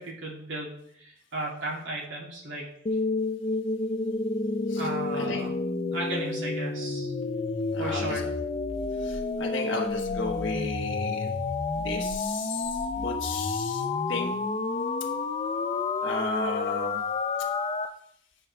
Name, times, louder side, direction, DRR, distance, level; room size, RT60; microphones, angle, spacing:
voice 1, 0.0-2.7 4.8-5.5 5.9-7.1 7.8-8.3, right 2 dB, 85° right, -3 dB, 2.7 m, -35 dB
sound 1, 2.9-17.9, left 3 dB, 30° left, 0.5 m, -30 dB
voice 2, 5.1-5.5 7.7-8.3 9.0-11.3 11.7-14.3 16.0-17.0, left 4 dB, 75° left, 0 dB, 1.2 m, -33 dB
8.7 x 6.3 x 3.4 m, 0.68 s
head